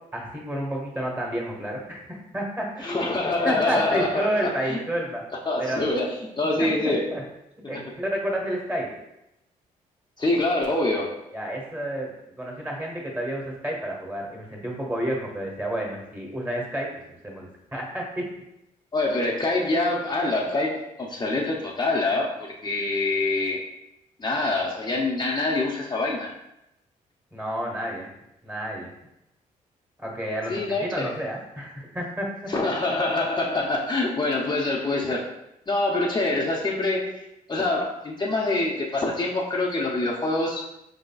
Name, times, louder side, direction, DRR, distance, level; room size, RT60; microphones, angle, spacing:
voice 1, 0.1-5.2 5.6-5.8 6.6-7.2 7.7-8.9 11.3-12.1 12.4-16.9 17.2-18.2 27.3-28.1 28.4-28.9 30.0-32.3, right 1 dB, 15° right, -1 dB, 1.5 m, -30 dB
voice 2, 2.8-4.8 5.5-7.1 7.6-7.8 10.2-11.2 18.9-23.6 24.2-26.3 30.5-31.2 32.5-35.3 35.7-40.7, left 2 dB, 30° left, -2 dB, 0.7 m, -25 dB
4.8 x 3.8 x 2.3 m, 0.87 s
cardioid pair, 65°, 15 cm